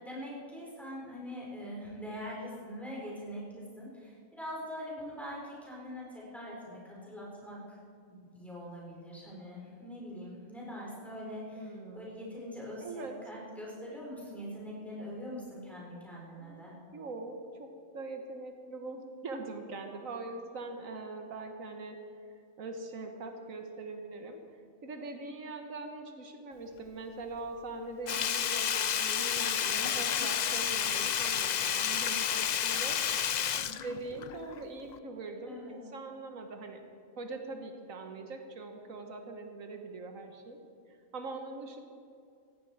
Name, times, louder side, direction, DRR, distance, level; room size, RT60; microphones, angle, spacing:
voice 1, 0.0-7.8 8.1-16.7 35.5-35.8, equal, ahead, -6 dB, 5.1 m, -43 dB
voice 2, 11.6-12.1 12.8-13.2 16.4-16.7 16.9-22.0 22.6-24.4 24.8-33.0 33.7-36.8 37.2-40.6 40.9-41.8, right 3 dB, 85° right, 5 dB, 1.7 m, -42 dB
Sink (filling or washing), 28.1-34.6 34.9-35.0, left 9 dB, 75° left, 0.4 m, -31 dB
17.0 x 15.5 x 4.8 m, 2.3 s
omnidirectional pair, 1.4 m